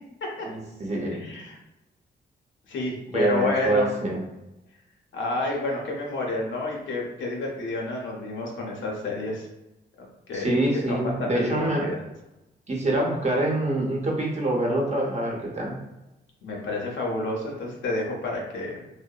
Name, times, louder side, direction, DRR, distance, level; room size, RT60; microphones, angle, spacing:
voice 1, 0.5-1.2 3.1-4.2 10.3-11.9 12.7-15.8, right 1 dB, 35° right, -2 dB, 0.8 m, -25 dB
voice 2, 1.0-1.6 2.7-3.9 5.1-9.5 10.3-10.5 10.9-12.0 16.4-18.8, left 2 dB, 90° left, -2 dB, 0.6 m, -30 dB
2.7 x 2.0 x 2.3 m, 0.98 s
cardioid pair, 70°, 19 cm